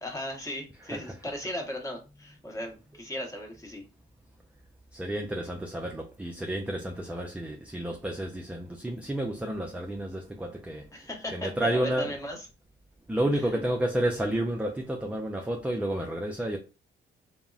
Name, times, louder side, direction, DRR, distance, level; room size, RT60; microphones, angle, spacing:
voice 1, 0.0-3.8 10.9-12.5 13.3-13.6, left 1 dB, 15° left, 0.9 m, -37 dB
voice 2, 4.9-12.1 13.1-16.6, right 1 dB, 5° right, 0.3 m, -31 dB
3.5 x 2.0 x 2.3 m
cardioid pair, 90°, 20 cm